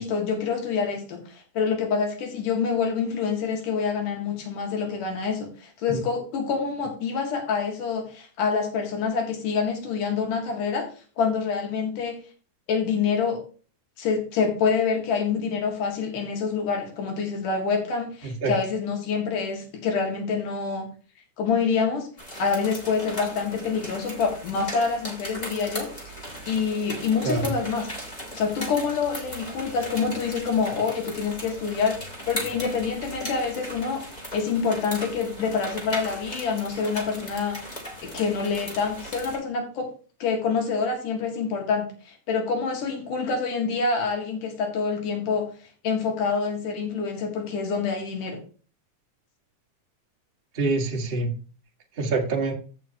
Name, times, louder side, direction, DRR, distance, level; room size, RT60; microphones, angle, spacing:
voice 1, 0.0-10.9 11.2-12.2 12.7-13.4 14.0-20.9 21.4-22.1 22.4-26.2 26.5-27.9 28.3-32.0 32.3-34.0 34.3-37.6 38.0-39.9 40.2-45.5 45.8-48.4, left 5 dB, 80° left, 2 dB, 3.5 m, -26 dB
sound 1, 22.2-39.4, equal, 15° left, 2.1 m, -38 dB
voice 2, 50.5-51.3 52.0-52.5, right 3 dB, 35° right, 2 dB, 0.8 m, -25 dB
15.0 x 6.2 x 2.8 m, 0.39 s
omnidirectional pair, 3.6 m